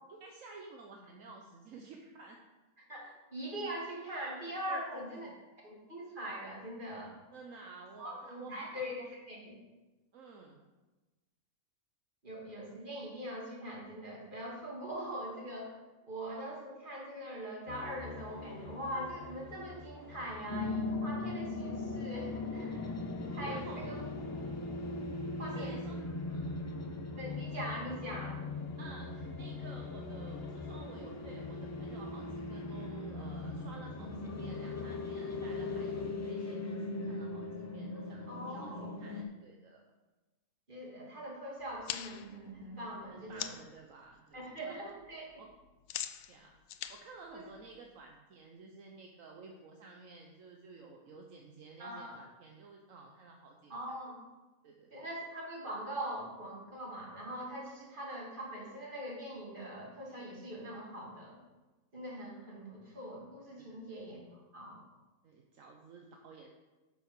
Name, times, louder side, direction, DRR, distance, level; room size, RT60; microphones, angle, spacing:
voice 1, 0.1-2.4 3.0-3.1 4.7-5.4 7.3-9.1 10.1-10.6 23.4-23.8 25.4-26.0 26.2-26.6 28.8-39.9 43.1-44.9 45.4-45.6 46.3-53.8 54.6-55.1 63.6-64.0 65.2-66.5, right 4 dB, 70° right, 1 dB, 1.3 m, -53 dB
voice 2, 2.9-5.3 5.6-7.1 8.0-9.6 12.2-15.8 16.0-22.9 23.3-24.0 25.4-25.8 27.2-28.4 38.3-38.9 40.7-43.5 44.3-45.2 47.3-47.4 51.8-52.2 53.7-54.2 54.9-61.4 61.9-64.8, right 1 dB, 35° right, -4 dB, 2.8 m, -42 dB
sound 1, 17.7-36.1, left 5 dB, 50° left, 1.0 m, -48 dB
sound 2, 20.5-39.2, left 2 dB, 20° left, 0.5 m, -39 dB
sound 3, 41.6-43.8 44.2-44.6 44.9-48.1, left 10 dB, 80° left, 1.0 m, -43 dB
9.6 x 6.1 x 6.1 m, 1.2 s
omnidirectional pair, 1.4 m